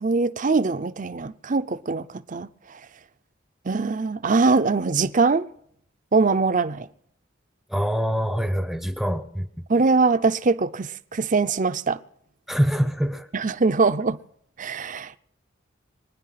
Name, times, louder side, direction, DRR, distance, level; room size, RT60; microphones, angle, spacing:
voice 1, 0.0-2.5 3.7-5.5 6.1-6.9 9.7-12.0 13.3-14.2 14.6-15.2, right 4 dB, 40° right, 0.6 m, -22 dB
voice 2, 7.7-9.5 12.5-13.3, equal, ahead, 0.7 m, -24 dB
24.0 x 10.0 x 5.8 m
head